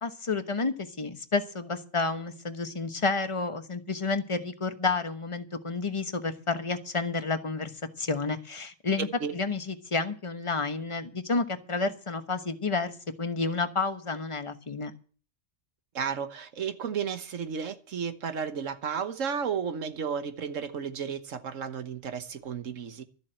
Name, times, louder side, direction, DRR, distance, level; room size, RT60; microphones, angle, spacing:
voice 1, 0.0-7.7 8.0-9.1 9.3-14.9, left 4 dB, 25° left, 1.1 m, -30 dB
voice 2, 15.9-23.0, right 7 dB, 85° right, 1.5 m, -33 dB
13.0 x 7.3 x 8.8 m
omnidirectional pair, 1.3 m